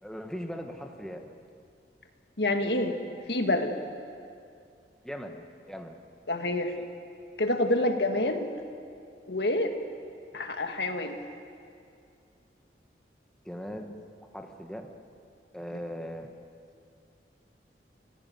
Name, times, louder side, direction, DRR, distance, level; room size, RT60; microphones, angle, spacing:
voice 1, 0.0-1.3 5.0-6.0 6.8-6.9 13.4-13.9 14.3-14.9 15.5-16.3, equal, 5° left, 3 dB, 1.5 m, -39 dB
voice 2, 2.4-3.0 3.3-3.7 6.3-6.7 7.4-8.5 9.3-9.7 10.3-11.2, left 1 dB, 70° left, 5 dB, 2.0 m, -27 dB
29.5 x 16.0 x 9.4 m, 2.4 s
head